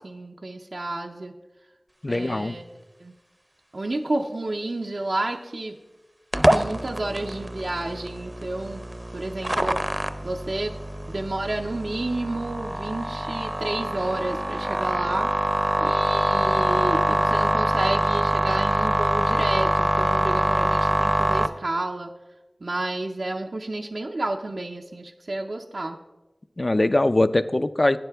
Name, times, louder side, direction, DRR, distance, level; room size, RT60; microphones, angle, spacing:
voice 1, 0.0-1.3 2.1-2.6 3.0-3.1 3.7-5.8 6.3-8.8 9.1-9.8 10.2-10.8 11.1-15.3 15.8-22.1 22.6-26.0, right 2 dB, 85° right, 1 dB, 0.5 m, -30 dB
voice 2, 2.0-2.6 26.6-28.0, left 2 dB, 50° left, 12 dB, 0.4 m, -21 dB
sound 1, 6.3-21.5, right 1 dB, 25° right, 0.6 m, -24 dB
12.0 x 9.7 x 3.4 m, 1.1 s
wide cardioid pair, 55°, 0 cm